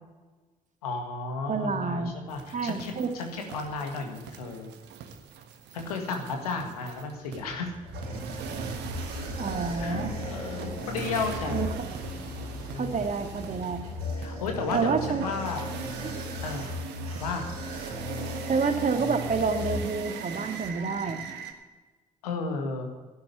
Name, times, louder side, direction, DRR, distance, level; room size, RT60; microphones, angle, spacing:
voice 1, 0.8-4.7 5.7-7.7 9.8-11.6 12.7-13.0 14.1-15.6 16.4-16.7 17.2-17.5 22.2-22.8, left 4 dB, 85° left, 4 dB, 1.8 m, -33 dB
voice 2, 1.5-2.1 2.5-3.1 9.4-10.1 11.5-11.9 12.8-13.8 14.7-15.2 16.0-16.1 18.5-21.2, right 5 dB, 40° right, 6 dB, 1.9 m, -28 dB
sound 1, 2.3-21.5, right 6 dB, 65° right, 1.4 m, -41 dB
sound 2, 7.5-20.3, left 1 dB, 85° right, 3.7 m, -37 dB
12.0 x 10.5 x 8.3 m, 1.3 s
hypercardioid pair, 45°, 19 cm